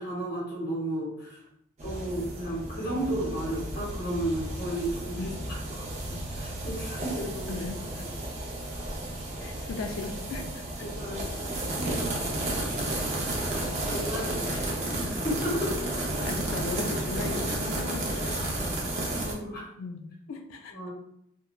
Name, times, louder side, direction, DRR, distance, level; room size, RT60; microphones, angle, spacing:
voice 1, 0.0-1.4 1.8-5.8 6.1-7.6 8.7-8.8 10.8-12.3 12.6-12.7 13.9-16.3 19.1-19.6 20.7-20.9, right 1 dB, 50° left, -5 dB, 0.8 m, -34 dB
sound 1, 1.8-19.3, right 1 dB, 35° right, 0.5 m, -32 dB
voice 2, 7.5-7.8 9.4-10.9 14.5-14.7 14.9-15.1 16.2-18.8 19.8-20.7, left 4 dB, 75° left, 4 dB, 0.3 m, -37 dB
3.1 x 2.2 x 2.2 m, 0.74 s
head